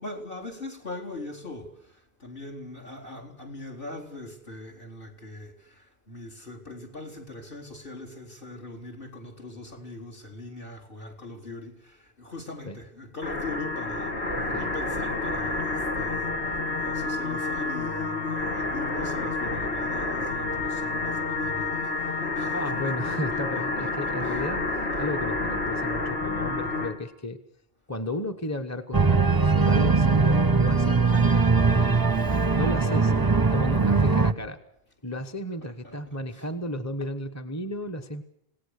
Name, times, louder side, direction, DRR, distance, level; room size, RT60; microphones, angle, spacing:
voice 1, 0.0-24.5 24.9-25.0 35.6-36.5, left 2 dB, 55° left, 4.1 m, -41 dB
sound 1, 13.2-26.9, left 3 dB, 75° left, 3.0 m, -29 dB
voice 2, 14.4-14.7 22.5-27.4 27.9-31.9 32.5-33.1 33.5-34.6 35.0-38.2, left 1 dB, 15° left, 1.1 m, -34 dB
Organ, 28.9-34.3, right 4 dB, 20° right, 0.8 m, -21 dB
27.0 x 18.0 x 6.6 m
omnidirectional pair, 1.1 m